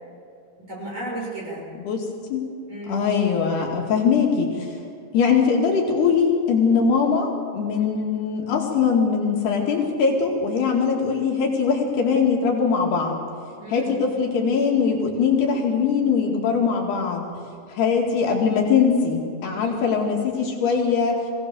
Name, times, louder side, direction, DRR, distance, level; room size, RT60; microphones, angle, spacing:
voice 1, 0.6-1.7 2.7-3.0 13.6-14.0 19.4-19.9, right 1 dB, 25° right, -3 dB, 6.0 m, -34 dB
voice 2, 1.8-2.5 2.9-4.7 5.1-13.2 13.7-17.3 17.7-21.3, left 5 dB, 65° left, -1 dB, 4.1 m, -21 dB
23.5 x 17.5 x 7.0 m, 2.4 s
omnidirectional pair, 5.1 m